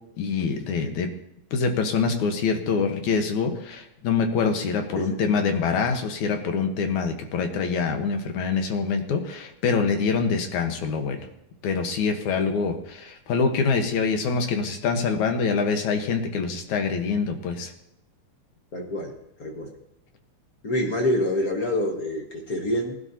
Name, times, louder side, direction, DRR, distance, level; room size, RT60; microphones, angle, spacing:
voice 1, 0.2-1.1 1.5-11.3 11.6-17.7, left 5 dB, 75° left, 5 dB, 2.6 m, -25 dB
voice 2, 18.7-19.1 19.4-19.7 20.6-23.0, left 1 dB, 45° left, 1 dB, 1.2 m, -26 dB
19.0 x 11.5 x 2.8 m, 0.83 s
omnidirectional pair, 3.4 m